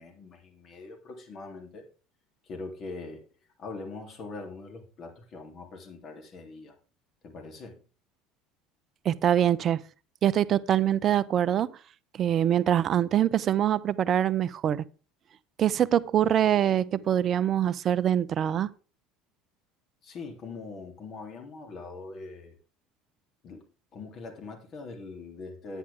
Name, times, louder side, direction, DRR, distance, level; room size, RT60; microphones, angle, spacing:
voice 1, 0.0-1.9 2.4-3.2 3.6-6.7 7.2-7.8 20.0-22.5 23.4-23.7 23.9-25.8, left 3 dB, 50° left, 3.3 m, -42 dB
voice 2, 9.0-9.8 10.2-11.7 12.2-14.8 15.6-18.7, right 10 dB, 45° right, 0.6 m, -24 dB
10.5 x 9.8 x 3.6 m
hypercardioid pair, 80°, 0 cm